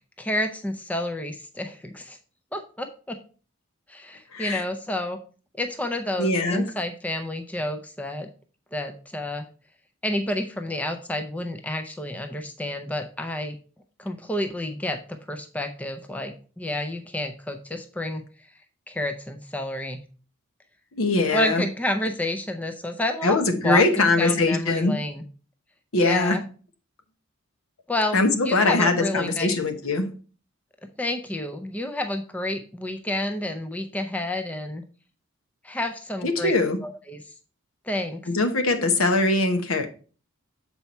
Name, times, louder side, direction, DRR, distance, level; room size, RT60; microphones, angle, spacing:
voice 1, 0.2-2.2 2.5-3.2 3.9-5.2 5.6-8.3 8.7-9.5 10.0-13.5 14.0-18.2 18.9-20.0 21.3-23.4 23.6-25.2 26.0-26.4 27.9-29.5 31.0-34.8 35.6-36.5 36.8-37.2 37.8-38.2, left 1 dB, 5° left, 0.5 m, -30 dB
voice 2, 4.3-4.6 6.2-6.7 20.9-21.6 23.2-25.0 25.9-26.4 28.1-30.1 36.2-36.8 38.3-39.9, left 2 dB, 85° left, 1.0 m, -22 dB
7.0 x 4.5 x 4.2 m
head